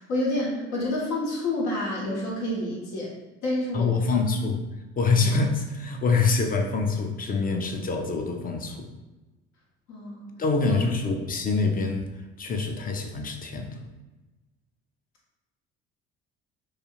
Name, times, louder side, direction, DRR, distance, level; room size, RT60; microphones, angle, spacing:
voice 1, 0.0-4.2 5.2-5.3 9.9-10.3 10.6-10.8, left 1 dB, 70° left, -4 dB, 0.8 m, -29 dB
voice 2, 3.7-4.6 5.0-8.9 10.4-12.1 12.4-13.8, left 4 dB, 25° left, 3 dB, 0.5 m, -25 dB
2.4 x 2.4 x 2.9 m, 1.1 s
hypercardioid pair, 55°, 32 cm